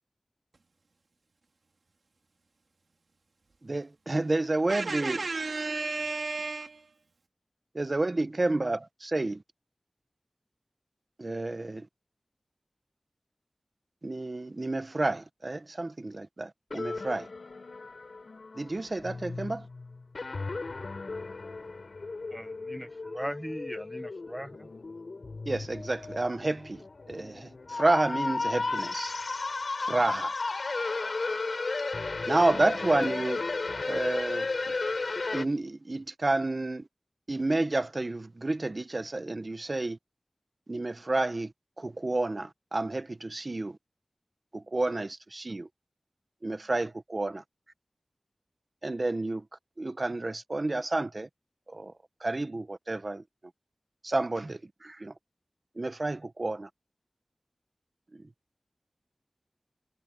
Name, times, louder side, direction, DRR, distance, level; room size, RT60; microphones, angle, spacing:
voice 1, 3.6-5.2 7.7-9.4 11.2-11.9 14.0-17.3 18.6-19.7 25.5-29.1 29.8-30.3 32.3-33.4 33.9-34.5 35.3-36.8 37.3-40.0 40.7-41.5 41.8-43.8 44.5-45.7 46.4-47.4 48.8-49.4 49.8-51.3 51.7-51.9 52.2-53.2 54.0-55.1 55.8-56.7, right 2 dB, 50° right, 1.1 m, -30 dB
voice 2, 4.7-7.0, right 3 dB, 85° right, 3.0 m, -33 dB
sound 1, 16.7-35.5, left 3 dB, 75° left, 7.7 m, -34 dB
voice 3, 22.3-24.7 33.9-34.0, equal, 5° right, 1.5 m, -39 dB
wide cardioid pair, 55°, 0 cm